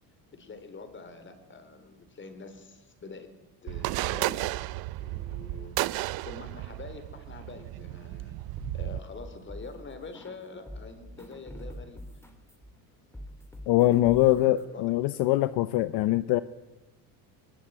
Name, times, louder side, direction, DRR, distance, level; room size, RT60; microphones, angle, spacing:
voice 1, 0.3-3.3 3.6-4.5 5.0-8.3 8.7-12.0 13.9-14.9, left 4 dB, 30° left, 9 dB, 4.1 m, -45 dB
sound 1, 3.7-9.0, right 18 dB, 60° right, 0.8 m, -33 dB
sound 2, 8.6-10.4 10.7-14.6, equal, 5° left, 3.7 m, -44 dB
voice 2, 13.7-16.4, left 16 dB, 65° left, 15 dB, 0.9 m, -23 dB
23.5 x 20.5 x 9.5 m, 1.1 s
cardioid pair, 125°, 41 cm